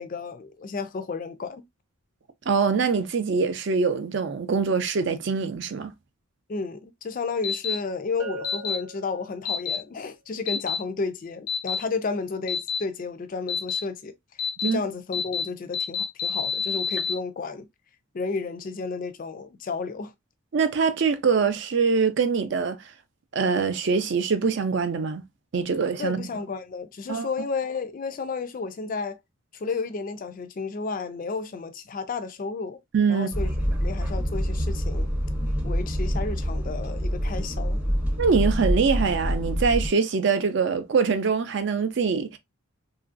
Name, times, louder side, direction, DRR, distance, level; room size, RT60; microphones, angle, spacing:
voice 1, 0.0-1.6 6.5-14.1 14.6-17.7 18.1-20.1 26.0-29.2 29.5-32.8 33.1-33.5 33.8-35.1 35.6-37.8, left 4 dB, 40° left, 0.3 m, -32 dB
voice 2, 2.5-5.9 14.6-14.8 20.5-22.9 23.3-25.2 25.5-26.3 27.1-27.3 32.9-33.3 38.2-42.4, right 5 dB, 55° right, 0.4 m, -24 dB
sound 1, 7.4-7.7 8.4-8.8 9.4-9.8 10.5-10.8 11.5-11.8 12.5-12.8 13.5-13.8 14.4-14.7 15.1-15.4 15.7-17.1, left 6 dB, 90° left, 0.6 m, -27 dB
Bell, 8.2-9.8, right 2 dB, 80° right, 0.8 m, -40 dB
sound 2, 33.3-39.9, equal, 5° right, 0.5 m, -26 dB
2.9 x 2.5 x 2.4 m
head